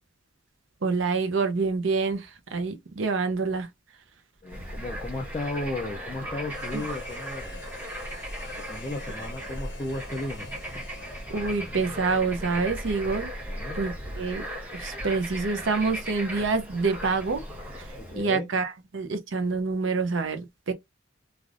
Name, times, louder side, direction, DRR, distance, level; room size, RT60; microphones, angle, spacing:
voice 1, 0.8-3.7 6.7-6.8 11.3-13.3 13.7-14.4 14.7-17.4 18.1-20.7, right 4 dB, 65° right, 0.6 m, -27 dB
voice 2, 4.4-7.6 8.6-10.5 13.5-13.8 17.9-18.5, left 2 dB, 20° left, 0.4 m, -35 dB
Bird / Frog, 4.5-18.2, equal, 10° right, 0.9 m, -37 dB
Harmonica, 6.5-12.3, left 2 dB, 55° left, 0.9 m, -47 dB
3.3 x 2.4 x 2.4 m
head